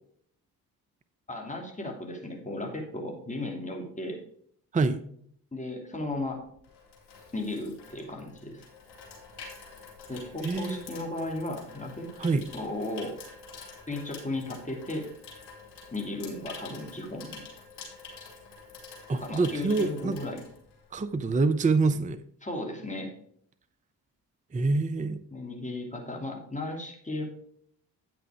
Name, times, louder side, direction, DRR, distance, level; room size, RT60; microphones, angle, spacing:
voice 1, 1.3-4.2 5.5-6.5 7.3-8.6 10.1-12.1 12.5-13.2 13.9-15.1 15.9-17.4 19.1-20.4 22.4-23.1 25.3-27.2, left 2 dB, 15° left, 2.5 m, -35 dB
Water tap faucet / Sink (filling or washing), 6.1-21.2 21.5-21.7, left 4 dB, 55° left, 3.6 m, -47 dB
voice 2, 10.4-10.8 12.2-12.5 19.1-20.2 20.9-22.2 24.5-25.2, right 3 dB, 15° right, 0.6 m, -26 dB
9.1 x 6.1 x 4.9 m
hypercardioid pair, 40°, 47 cm